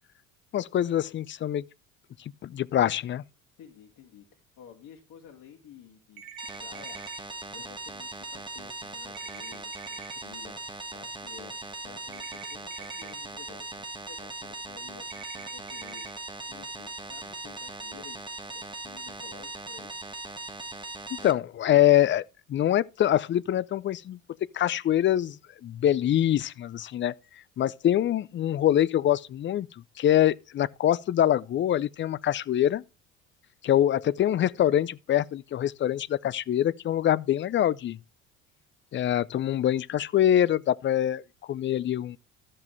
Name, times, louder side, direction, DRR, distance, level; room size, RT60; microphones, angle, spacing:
voice 1, 0.5-1.6 2.4-3.2 21.1-22.2 22.5-24.2 24.5-25.4 25.6-27.1 27.6-29.7 30.0-32.8 33.6-38.0 38.9-41.2 41.5-42.2, left 11 dB, 30° left, 0.5 m, -24 dB
voice 2, 3.6-6.2 6.6-7.0 7.5-16.1 16.4-18.2 18.5-19.9, left 9 dB, 50° left, 2.2 m, -52 dB
sound 1, 6.2-7.2 9.1-10.1 12.1-13.1 15.1-16.1, right 8 dB, 55° right, 2.3 m, -45 dB
sound 2, 6.4-21.3, right 2 dB, 10° right, 1.6 m, -39 dB
13.0 x 7.7 x 3.3 m
hypercardioid pair, 65°, 40 cm